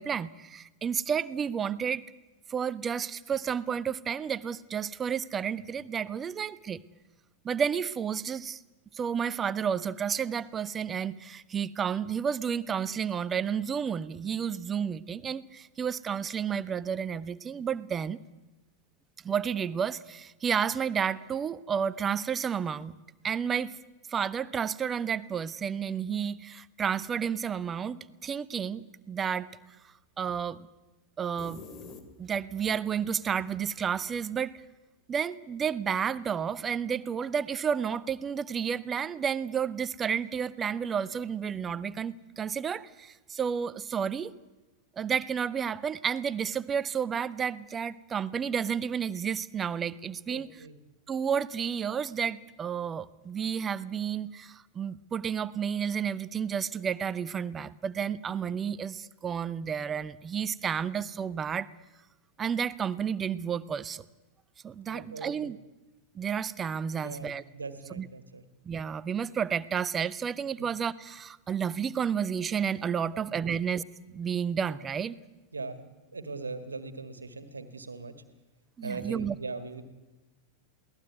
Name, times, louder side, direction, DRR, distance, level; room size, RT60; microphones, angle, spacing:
voice 1, 0.0-2.0 2.5-6.8 7.4-8.6 8.9-18.2 19.2-22.9 23.2-23.8 24.1-29.6 30.2-30.7 31.2-31.6 32.2-34.6 35.1-44.3 45.0-50.5 51.1-61.7 62.4-64.0 64.6-65.6 66.1-67.4 68.0-68.1 68.6-73.8 74.1-75.2 78.8-79.3, right 7 dB, 20° right, 18 dB, 0.7 m, -31 dB
sound 1, 31.4-32.6, left 4 dB, 30° left, 2.6 m, -46 dB
voice 2, 50.3-50.8 64.9-65.5 66.9-68.4 73.1-73.5 75.5-78.1 78.8-79.9, right 3 dB, 75° right, 10 dB, 1.8 m, -40 dB
22.0 x 17.5 x 9.3 m, 1.1 s
figure-of-eight pair, 90°, 0 cm